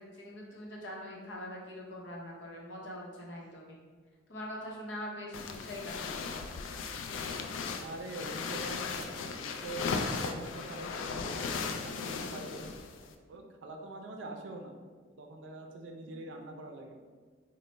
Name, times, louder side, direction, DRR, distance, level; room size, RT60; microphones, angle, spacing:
voice 1, 0.0-3.8 4.3-6.2, left 1 dB, 70° left, -3 dB, 0.8 m, -43 dB
sound 1, 5.3-13.1, left 5 dB, 85° left, 0.3 m, -37 dB
voice 2, 7.8-12.6 13.3-14.7 15.2-17.0, right 2 dB, 70° right, 3 dB, 0.4 m, -44 dB
3.9 x 2.1 x 3.2 m, 1.5 s
head